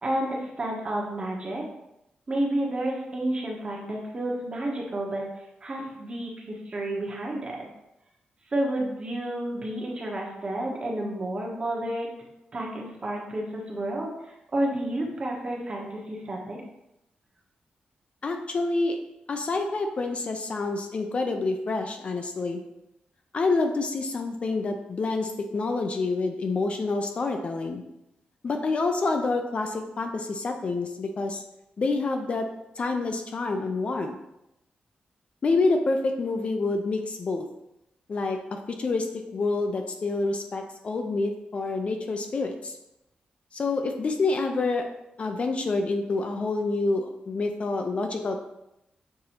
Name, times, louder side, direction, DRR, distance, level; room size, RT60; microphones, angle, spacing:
voice 1, 0.0-1.6 2.3-7.7 8.5-12.2 12.5-16.6, right 1 dB, 35° right, -1 dB, 0.9 m, -30 dB
voice 2, 18.2-19.0 19.3-22.6 23.3-27.8 28.4-31.4 31.8-32.5 32.8-34.1 35.4-37.5 38.1-39.1 39.3-42.8 43.5-44.8 45.2-48.4, left 3 dB, 40° left, 4 dB, 0.4 m, -27 dB
6.6 x 2.6 x 2.9 m, 0.86 s
wide cardioid pair, 155°, 3 cm